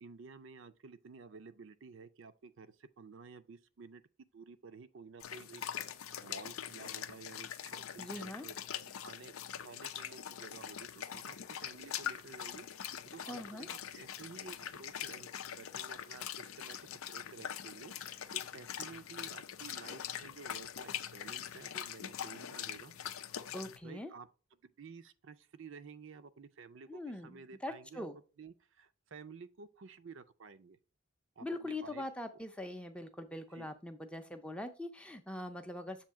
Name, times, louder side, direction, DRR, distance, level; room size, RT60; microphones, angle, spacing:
voice 1, 0.0-5.6 5.9-8.5 9.0-9.3 9.6-16.8 17.1-23.0 23.8-24.3 24.6-28.1 28.4-30.8 31.4-32.1 33.5-33.7, right 5 dB, 60° right, 0.5 m, -52 dB
sound 1, 5.2-23.8, left 9 dB, 80° left, 0.5 m, -43 dB
voice 2, 8.0-8.5 13.3-13.7 23.5-24.1 26.9-28.2 31.4-36.1, left 1 dB, 5° left, 0.5 m, -42 dB
7.2 x 2.8 x 5.6 m
head